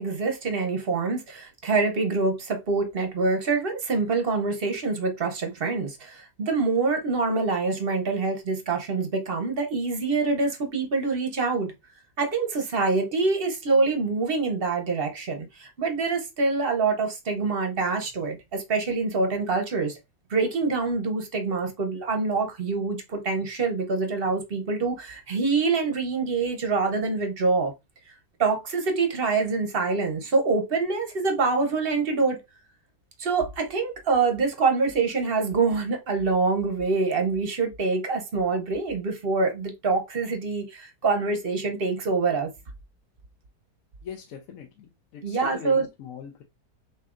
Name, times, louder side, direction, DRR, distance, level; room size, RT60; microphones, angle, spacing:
voice 1, 0.0-11.7 12.2-19.9 20.3-27.7 28.4-32.4 33.2-42.5 45.2-45.9, right 4 dB, 45° right, 0.9 m, -25 dB
voice 2, 44.0-46.4, left 7 dB, 65° left, 1.1 m, -41 dB
6.5 x 2.7 x 2.5 m
omnidirectional pair, 1.7 m